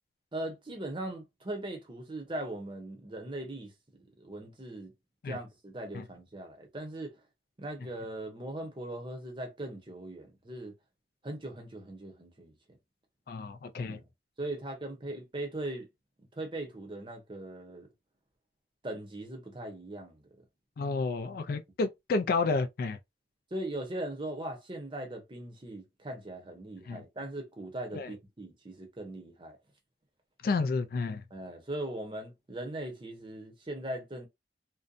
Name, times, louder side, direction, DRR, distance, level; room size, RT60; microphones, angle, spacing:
voice 1, 0.3-3.7 4.0-4.9 5.3-7.2 7.6-10.7 11.2-12.6 13.8-14.1 14.4-15.9 16.3-17.9 18.8-20.4 23.5-29.6 31.3-34.3, right 1 dB, 30° right, 0.7 m, -39 dB
voice 2, 13.3-14.0 20.8-23.0 26.9-27.0 27.9-28.1 30.4-31.2, left 4 dB, 55° left, 0.3 m, -30 dB
2.6 x 2.2 x 2.4 m
head